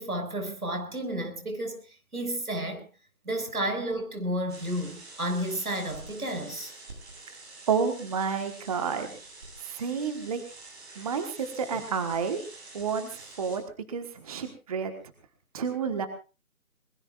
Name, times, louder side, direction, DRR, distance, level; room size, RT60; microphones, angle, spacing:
voice 1, 0.0-1.8 2.1-2.8 3.3-6.7, right 1 dB, 90° right, 6.3 m, -31 dB
sound 1, 4.5-13.6, right 2 dB, 45° right, 7.8 m, -47 dB
voice 2, 7.7-9.1 9.6-10.4 11.0-12.4 12.7-13.6 13.9-14.9 15.5-16.1, right 6 dB, 25° right, 1.4 m, -30 dB
24.0 x 21.0 x 2.5 m
figure-of-eight pair, 155°, 43 cm